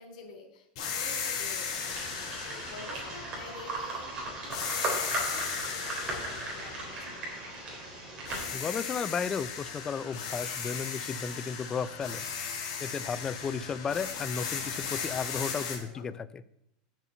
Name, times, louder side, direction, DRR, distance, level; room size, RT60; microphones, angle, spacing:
voice 1, 0.0-1.8 2.4-4.9 5.2-7.4 15.5-16.0, left 3 dB, 85° left, 4 dB, 3.3 m, -48 dB
sound 1, 0.8-4.0 4.5-7.9 8.3-15.8, left 6 dB, 60° left, 3.3 m, -37 dB
sound 2, 1.7-9.0, right 2 dB, 25° right, 3.5 m, -37 dB
voice 2, 8.5-12.2 12.8-16.4, left 6 dB, 15° left, 15 dB, 0.3 m, -34 dB
7.3 x 6.7 x 8.1 m, 0.81 s
supercardioid pair, 165°, 4 cm